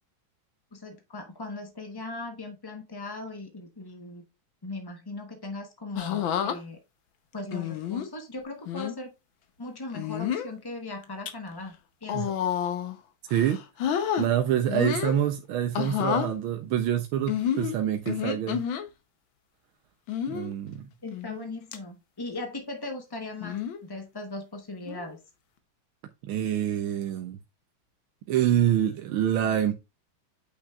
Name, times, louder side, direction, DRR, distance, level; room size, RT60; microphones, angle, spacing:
voice 1, 0.7-4.2 4.6-6.8 7.3-9.1 9.6-11.7 12.0-12.4 21.0-25.2, left 2 dB, 35° left, 0.4 m, -38 dB
sound 1, 6.0-6.6 7.5-8.1 8.7-8.9 9.9-10.5 11.0-11.3 12.0-13.0 13.3-14.3 14.7-15.2 15.7-16.3 17.3-18.8 20.1-20.5 21.1-21.4 21.7-21.8 23.4-23.8 24.9-25.2, left 9 dB, 75° left, 1.7 m, -29 dB
voice 2, 14.2-18.6 20.3-20.8 26.2-27.4 28.3-29.7, right 10 dB, 80° right, 1.5 m, -26 dB
8.3 x 5.7 x 2.3 m
omnidirectional pair, 2.3 m